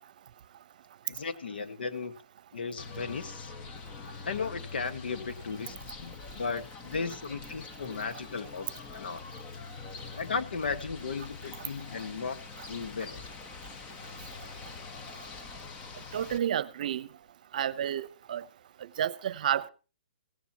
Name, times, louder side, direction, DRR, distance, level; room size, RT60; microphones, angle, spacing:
voice 1, 1.0-2.1 2.5-3.5 4.2-8.7 8.9-9.2 10.2-12.4 12.7-13.2, left 5 dB, 80° left, 1.7 m, -35 dB
sound 1, 2.8-16.4, left 5 dB, 20° left, 1.2 m, -44 dB
voice 2, 16.1-17.1 17.5-18.4 19.0-19.7, right 10 dB, 55° right, 0.8 m, -30 dB
17.0 x 17.0 x 3.0 m
hypercardioid pair, 155°, 5 cm